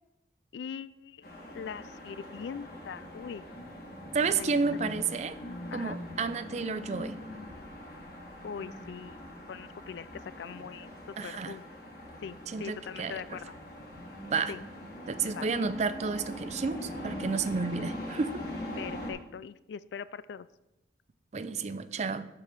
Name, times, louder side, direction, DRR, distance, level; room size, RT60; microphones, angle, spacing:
voice 1, 0.5-1.2 1.5-3.5 4.4-4.9 5.7-6.0 8.4-10.1 10.4-10.9 11.2-11.6 12.2-13.5 14.5-14.6 15.2-15.5 18.8-20.5, left 7 dB, 75° left, 17 dB, 0.3 m, -41 dB
sound 1, 1.2-19.1, left 1 dB, 55° left, 1.6 m, -42 dB
voice 2, 4.1-5.4 5.7-7.2 11.2-11.6 12.5-13.2 14.3-14.5 15.1-18.4 21.3-22.3, right 4 dB, 40° right, 12 dB, 0.4 m, -31 dB
7.2 x 5.1 x 6.0 m, 0.92 s
head